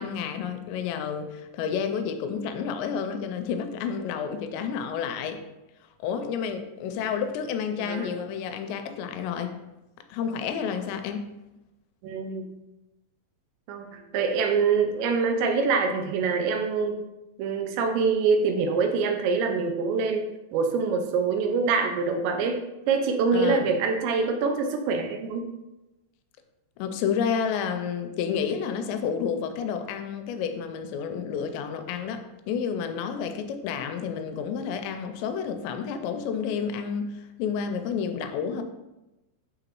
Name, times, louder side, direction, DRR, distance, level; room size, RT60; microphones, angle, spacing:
voice 1, 0.0-5.4 6.0-9.5 10.1-11.2 23.3-23.8 26.8-38.6, left 7 dB, 85° left, 7 dB, 2.8 m, -30 dB
voice 2, 7.8-8.1 12.0-12.6 13.7-13.9 14.1-17.0 17.4-22.6 22.9-25.5, right 5 dB, 85° right, 5 dB, 2.9 m, -25 dB
8.5 x 3.9 x 3.0 m, 0.98 s
omnidirectional pair, 5.1 m